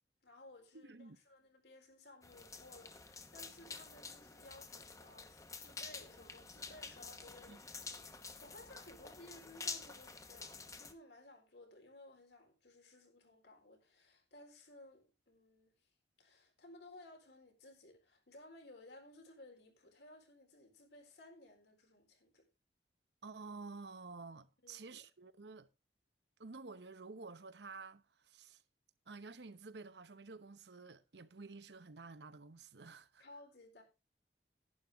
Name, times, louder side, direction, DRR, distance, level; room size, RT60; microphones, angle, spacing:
voice 1, 0.2-15.9 16.2-22.5 24.6-25.0 33.2-33.8, left 2 dB, 75° left, 4.1 m, -58 dB
voice 2, 0.7-1.2 7.5-7.6 23.2-25.7 26.4-28.6 29.1-33.3, right 3 dB, 75° right, 0.9 m, -51 dB
sound 1, 2.2-10.9, left 4 dB, 20° left, 1.0 m, -49 dB
11.0 x 11.0 x 3.5 m
head